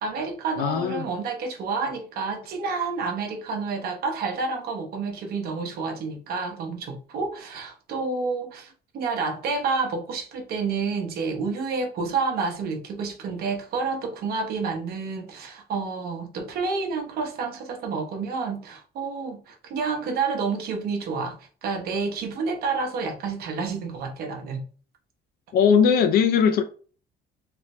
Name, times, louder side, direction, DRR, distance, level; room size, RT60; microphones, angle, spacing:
voice 1, 0.0-21.4 21.6-24.6, right 4 dB, 65° right, 0.8 m, -29 dB
voice 2, 0.6-1.1 25.5-26.6, left 7 dB, 65° left, 0.5 m, -19 dB
3.3 x 2.1 x 2.9 m
cardioid pair, 110°, 17 cm